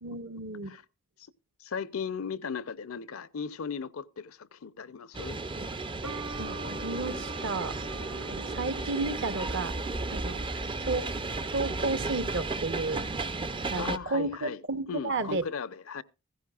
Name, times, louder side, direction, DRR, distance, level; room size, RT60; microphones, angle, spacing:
voice 1, 0.0-0.8 5.6-5.7 6.4-7.8 8.2-9.7 10.1-11.1 11.5-13.2 13.7-15.4, right 3 dB, 55° right, 1.0 m, -33 dB
voice 2, 1.6-5.4 13.8-14.6 14.9-16.0, left 6 dB, 65° left, 0.6 m, -37 dB
sound 1, 5.1-14.0, right 3 dB, 25° right, 0.5 m, -34 dB
sound 2, 6.0-11.5, right 2 dB, 80° right, 1.8 m, -44 dB
15.5 x 15.0 x 2.3 m
head